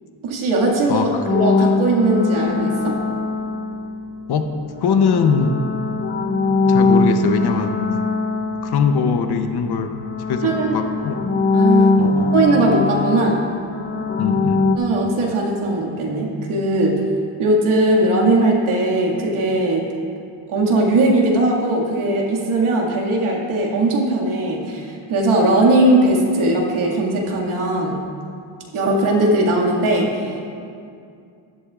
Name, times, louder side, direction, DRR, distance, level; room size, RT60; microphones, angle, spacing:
voice 1, 0.2-1.1 1.4-3.0 10.4-10.8 11.5-11.9 12.3-13.4 14.8-17.0 17.4-19.9 20.5-28.0 28.7-30.4, right 2 dB, 80° right, -2 dB, 2.1 m, -19 dB
voice 2, 0.9-1.3 4.3-4.5 4.8-5.5 6.5-7.8 8.6-10.0 10.3-11.3 12.0-12.4 14.2-14.7, left 6 dB, 50° left, 7 dB, 0.8 m, -21 dB
sound 1, 1.3-4.2 4.8-9.6 9.9-14.8, left 3 dB, 25° left, 0.6 m, -21 dB
15.0 x 11.5 x 2.4 m, 2.4 s
cardioid pair, 110°, 49 cm